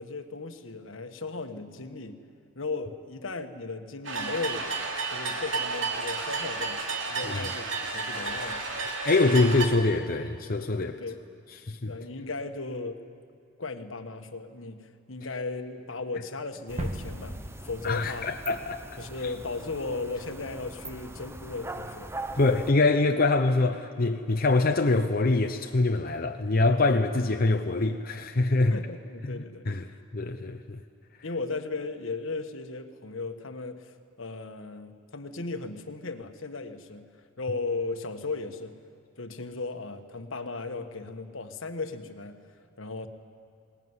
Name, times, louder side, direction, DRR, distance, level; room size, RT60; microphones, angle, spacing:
voice 1, 0.0-2.2 2.5-4.7 5.1-6.8 7.1-8.6 10.8-11.2 11.9-13.0 13.6-18.3 19.0-22.1 28.7-30.0 31.2-37.1 37.4-38.8 39.2-43.1, left 3 dB, 75° left, 7 dB, 1.4 m, -36 dB
sound 1, 4.0-9.7, right 4 dB, 70° right, 2.9 m, -32 dB
voice 2, 9.0-11.0 11.7-11.9 17.8-18.9 22.4-28.8 29.3-29.8 30.1-30.8, left 2 dB, 45° left, 4 dB, 0.8 m, -24 dB
sound 2, 16.7-22.7, right 2 dB, 15° right, 0.8 m, -42 dB
sound 3, 16.8-19.3, right 1 dB, 35° right, 1.6 m, -38 dB
21.0 x 19.0 x 9.6 m, 2.5 s
head